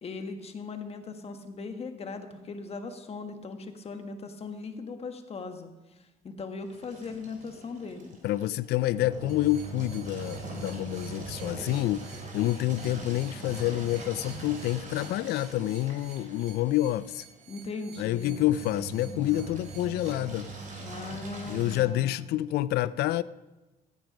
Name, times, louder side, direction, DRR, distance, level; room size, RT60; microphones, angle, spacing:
voice 1, 0.0-5.7 6.2-8.1 17.5-18.4 20.8-22.3, left 4 dB, 35° left, 1.5 m, -39 dB
Engine, 6.7-21.8, right 3 dB, 50° right, 3.5 m, -42 dB
voice 2, 8.2-17.2 18.0-20.5 21.5-23.2, left 14 dB, 70° left, 0.4 m, -28 dB
sound 1, 9.3-20.1, right 9 dB, 80° right, 1.5 m, -54 dB
15.5 x 9.4 x 5.2 m
cardioid pair, 110°, 17 cm